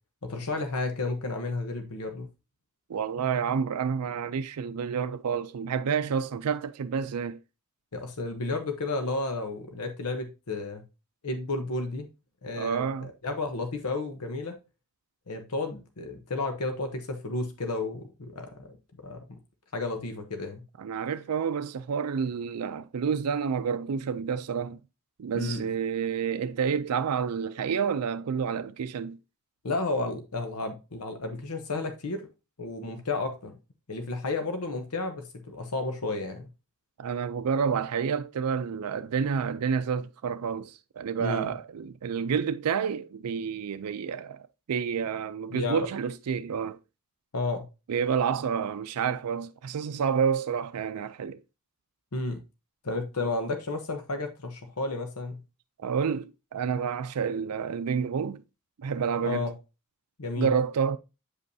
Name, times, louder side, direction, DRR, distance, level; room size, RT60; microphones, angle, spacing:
voice 1, 0.2-2.3 7.9-10.8 11.2-12.1 12.4-14.6 15.3-19.2 19.7-20.6 25.3-25.6 29.6-32.2 32.6-33.5 33.9-36.5 41.2-41.5 45.5-45.8 47.3-47.7 52.1-52.4 52.8-55.4 59.2-59.5 60.2-60.5, left 3 dB, 90° left, 1.0 m, -32 dB
voice 2, 2.9-7.4 12.6-13.1 20.8-24.8 25.2-29.2 37.0-46.8 47.9-51.4 55.8-58.4 58.8-59.5 60.4-61.0, right 6 dB, 90° right, 0.4 m, -29 dB
8.2 x 5.3 x 2.7 m
head